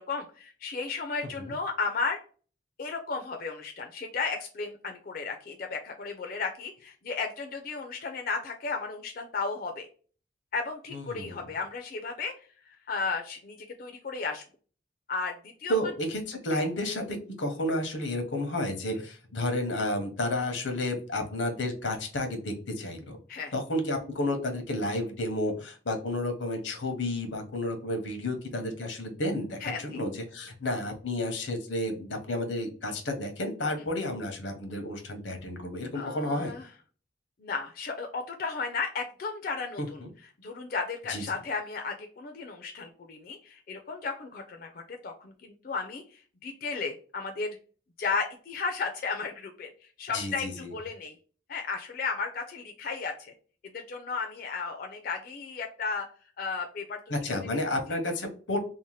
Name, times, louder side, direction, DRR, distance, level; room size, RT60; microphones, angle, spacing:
voice 1, 0.0-2.2 2.8-9.9 10.5-12.3 12.7-14.4 15.1-15.7 16.5-16.7 23.3-23.5 29.6-30.0 35.9-36.7 37.4-40.0 40.4-47.6 48.0-49.7 50.0-51.2 51.5-53.3 53.7-56.1 56.4-57.1 57.9-58.0, left 4 dB, 50° left, 3 dB, 0.4 m, -34 dB
voice 2, 10.9-11.4 15.7-23.2 23.5-36.5 39.8-40.1 41.1-41.2 50.1-50.7 57.1-58.6, left 1 dB, 85° left, 5 dB, 0.8 m, -31 dB
2.7 x 2.1 x 3.1 m, 0.40 s
head